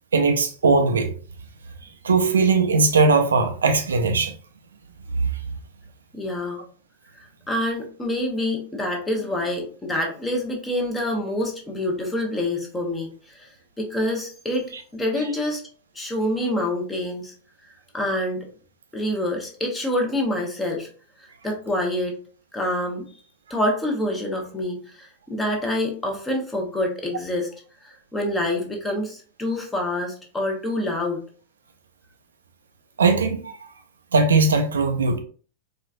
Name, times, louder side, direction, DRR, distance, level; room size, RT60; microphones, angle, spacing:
voice 1, 0.1-1.1 2.0-4.3 33.0-33.6 34.1-35.2, right 4 dB, 70° right, 0.4 m, -19 dB
voice 2, 6.1-6.6 7.2-13.5 13.8-14.7 14.9-15.6 15.9-17.3 17.9-18.5 18.9-20.9 21.2-22.1 22.5-23.1 23.5-27.5 27.8-31.2, left 1 dB, 10° left, 1.0 m, -26 dB
4.3 x 2.4 x 2.5 m
figure-of-eight pair, 90°, 0 cm